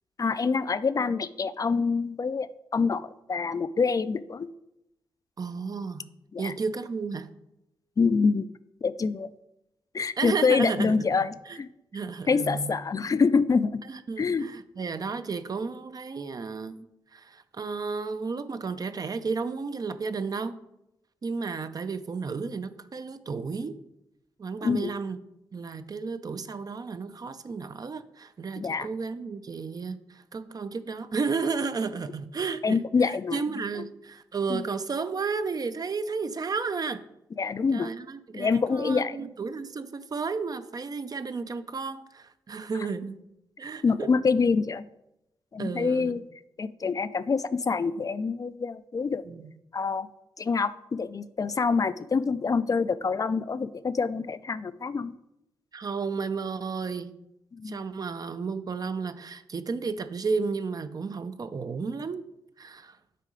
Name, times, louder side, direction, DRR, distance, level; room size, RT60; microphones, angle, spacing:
voice 1, 0.2-4.5 6.3-6.5 8.0-8.5 8.8-9.3 9.9-11.7 12.3-13.8 14.2-14.5 24.6-24.9 28.6-28.9 32.6-33.4 33.8-33.9 34.5-34.6 37.4-37.9 38.3-39.3 43.8-44.9 45.5-46.2 46.6-49.2 49.7-50.1 50.4-55.1 57.5-57.8, left 5 dB, 40° left, 13 dB, 0.4 m, -26 dB
voice 2, 5.4-6.1 6.4-7.3 10.2-11.0 11.5-11.6 11.9-12.7 13.9-16.8 17.1-20.6 21.2-23.8 24.4-25.2 25.5-37.0 37.7-43.2 43.6-44.1 45.6-46.2 49.3-49.5 55.7-57.2 57.6-62.2 62.6-63.0, right 4 dB, 45° right, 11 dB, 0.5 m, -33 dB
6.7 x 3.7 x 4.9 m, 0.86 s
supercardioid pair, 50°, 9 cm